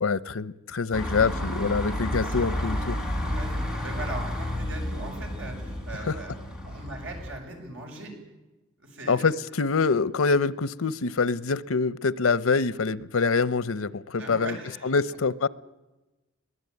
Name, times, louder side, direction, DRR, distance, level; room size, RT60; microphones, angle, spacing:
voice 1, 0.0-3.0 6.1-6.2 9.1-14.6 14.8-15.5, left 4 dB, 90° left, 0.8 m, -25 dB
sound 1, 0.9-7.4, left 1 dB, 5° right, 3.9 m, -31 dB
voice 2, 2.1-2.5 3.3-6.3 6.6-8.1 8.8-9.2 14.2-15.2, right 2 dB, 70° right, 6.5 m, -40 dB
22.0 x 18.0 x 9.5 m
head